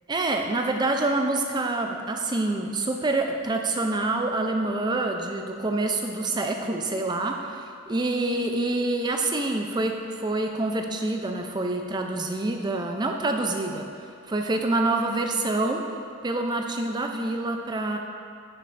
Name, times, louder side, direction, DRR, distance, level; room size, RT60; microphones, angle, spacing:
voice 1, 0.1-13.9 14.2-15.8 16.2-18.0, right 2 dB, 20° right, 3 dB, 0.4 m, -26 dB
10.0 x 5.5 x 2.5 m, 2.5 s
head